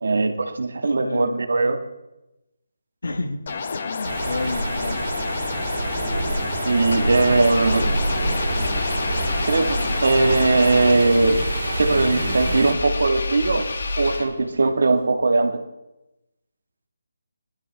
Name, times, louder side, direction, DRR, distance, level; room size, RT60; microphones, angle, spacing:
voice 1, 0.0-1.8 6.7-7.9 9.4-11.4 11.8-13.7 14.0-15.6, right 3 dB, 65° right, 6 dB, 1.8 m, -20 dB
voice 2, 0.9-1.4 3.0-3.4 3.7-5.1, left 2 dB, 75° left, 6 dB, 1.7 m, -30 dB
sound 1, 3.5-10.9, left 5 dB, 35° left, 0.9 m, -30 dB
sound 2, 4.0-12.7, right 2 dB, 45° right, 4.0 m, -27 dB
Engine, 6.9-14.6, left 2 dB, 55° left, 1.6 m, -29 dB
19.5 x 12.5 x 3.5 m, 0.93 s
hypercardioid pair, 175°, 0 cm